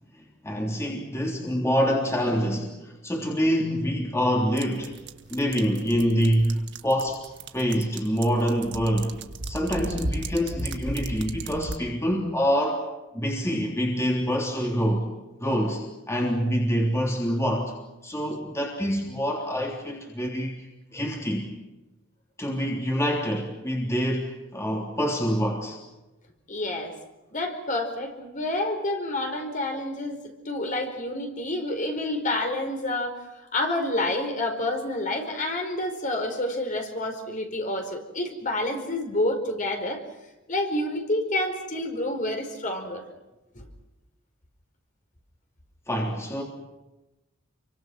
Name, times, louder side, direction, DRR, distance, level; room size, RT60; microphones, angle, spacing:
voice 1, 0.2-4.9 5.3-7.2 7.5-9.1 9.4-12.8 13.1-15.1 15.4-17.7 18.0-20.5 20.9-21.5 22.4-25.8 45.9-46.4, equal, 15° left, -1 dB, 3.4 m, -26 dB
sound 1, 4.6-11.8, right 2 dB, 60° right, 1.6 m, -35 dB
voice 2, 26.5-26.9 27.3-30.2 30.4-33.2 33.5-40.0 40.5-43.0 43.5-43.7, left 1 dB, 40° left, 4 dB, 4.8 m, -28 dB
29.0 x 24.5 x 6.2 m, 1.0 s
head